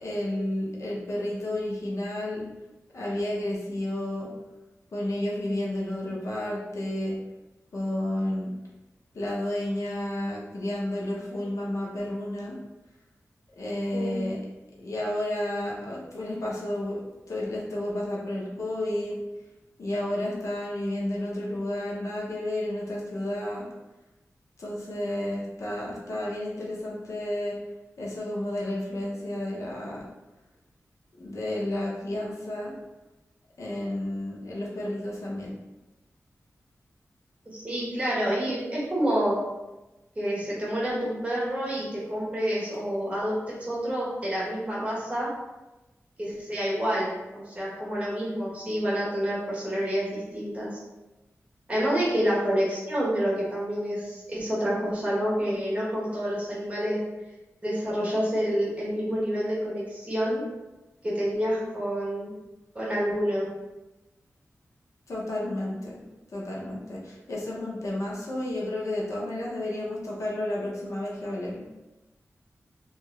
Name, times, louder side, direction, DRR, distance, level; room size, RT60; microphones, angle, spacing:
voice 1, 0.0-2.5 2.9-4.3 4.9-7.2 7.7-8.5 9.1-12.6 13.6-14.4 14.7-19.2 19.8-23.7 24.6-27.6 28.0-30.0 31.2-32.7 33.6-35.6 65.1-66.0 66.3-71.6, left 1 dB, 75° left, -4 dB, 0.7 m, -31 dB
voice 2, 37.6-39.4 40.2-45.3 46.2-50.7 51.7-57.0 57.6-60.4 61.0-62.3 62.7-63.5, equal, 25° right, -6 dB, 1.0 m, -28 dB
2.8 x 2.4 x 3.1 m, 1.0 s
wide cardioid pair, 125°, 5 cm